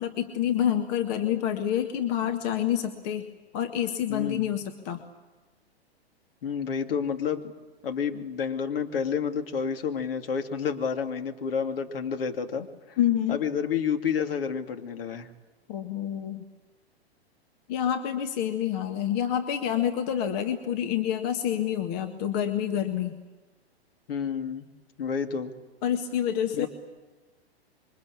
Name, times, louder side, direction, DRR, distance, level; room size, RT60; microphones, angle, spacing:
voice 1, 0.0-3.3 3.5-5.0 13.0-13.4 15.7-16.5 17.7-23.2 25.8-26.7, left 10 dB, 40° left, 6 dB, 1.9 m, -27 dB
voice 2, 4.1-4.5 6.4-7.5 7.8-13.0 13.3-15.3 24.1-24.7 25.0-25.5 26.5-26.7, left 6 dB, 60° left, 6 dB, 2.5 m, -30 dB
27.0 x 23.5 x 8.6 m, 1.2 s
figure-of-eight pair, 105°, 32 cm